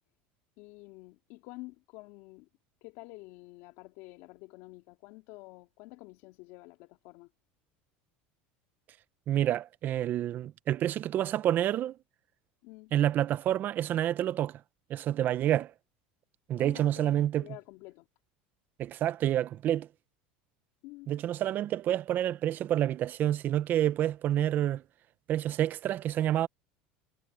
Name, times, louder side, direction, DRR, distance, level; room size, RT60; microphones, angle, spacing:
voice 1, 0.6-2.5 2.8-7.3 12.6-12.9 16.6-18.1 20.8-21.2, left 22 dB, 65° left, 2.7 m, -49 dB
voice 2, 9.3-12.0 12.9-14.6 14.9-15.7 16.5-17.4 18.8-19.9 21.1-24.8 25.3-26.5, right 12 dB, 45° right, 1.0 m, -28 dB
supercardioid pair, 110°, 5 cm